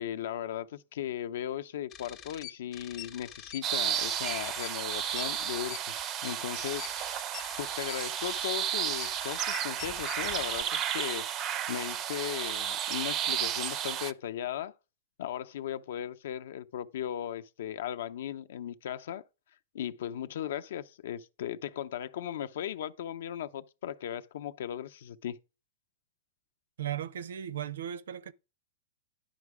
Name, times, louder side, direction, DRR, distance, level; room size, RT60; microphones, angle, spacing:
voice 1, 0.0-6.0 6.2-7.0 7.6-11.3 11.7-14.7 15.2-19.2 19.7-25.4, left 10 dB, 65° left, 0.7 m, -37 dB
sound 1, 1.9-10.6, left 10 dB, 20° left, 0.7 m, -45 dB
sound 2, 3.6-14.1, right 10 dB, 20° right, 0.4 m, -33 dB
voice 2, 26.8-28.3, right 10 dB, 85° right, 0.6 m, -36 dB
10.5 x 5.0 x 4.8 m
supercardioid pair, 170°, 0 cm